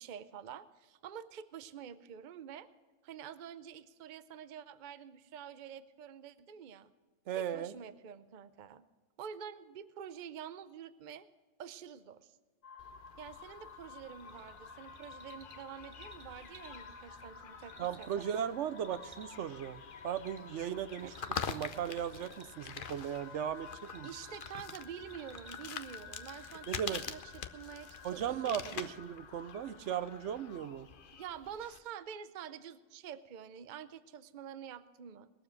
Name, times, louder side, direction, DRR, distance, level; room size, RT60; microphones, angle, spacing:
voice 1, 0.0-2.7 3.0-6.9 7.5-8.9 9.2-11.3 11.6-12.3 13.2-18.1 21.0-21.1 24.0-28.8 31.1-35.3, right 8 dB, 50° right, 14 dB, 0.7 m, -47 dB
voice 2, 7.3-7.7 17.8-21.1 21.5-24.1 26.7-27.0 28.0-30.9, right 9 dB, 75° right, 14 dB, 0.9 m, -37 dB
sound 1, 12.6-30.6, left 5 dB, 85° left, 1.5 m, -53 dB
sound 2, 12.8-31.8, left 7 dB, 50° left, 0.8 m, -47 dB
sound 3, 13.3-27.2, right 2 dB, 25° right, 1.9 m, -60 dB
20.5 x 7.2 x 6.3 m, 1.4 s
omnidirectional pair, 1.2 m